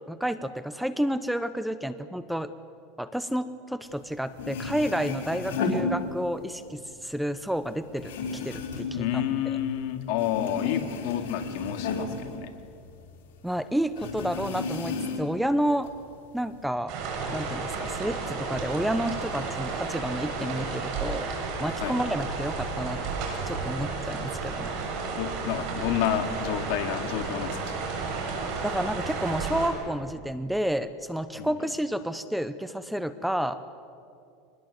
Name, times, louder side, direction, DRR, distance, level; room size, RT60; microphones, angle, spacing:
voice 1, 0.1-2.5 3.0-9.6 13.4-15.9 16.3-16.9 17.3-21.3 21.6-23.0 23.5-24.8 28.6-33.6, equal, ahead, 13 dB, 0.8 m, -30 dB
sound 1, 4.1-4.2 4.3-6.6 6.9-9.8 10.1-13.1 13.4-13.5 14.0-15.4 15.8-16.6, left 4 dB, 80° left, 4.0 m, -33 dB
voice 2, 8.9-12.5 20.4-20.8 21.8-22.0 25.2-28.0 31.4-31.5, left 10 dB, 65° left, 6 dB, 2.4 m, -30 dB
sound 2, 16.9-29.7, right 4 dB, 55° right, 6.5 m, -32 dB
23.5 x 20.5 x 8.0 m, 2.5 s
supercardioid pair, 125°, 0 cm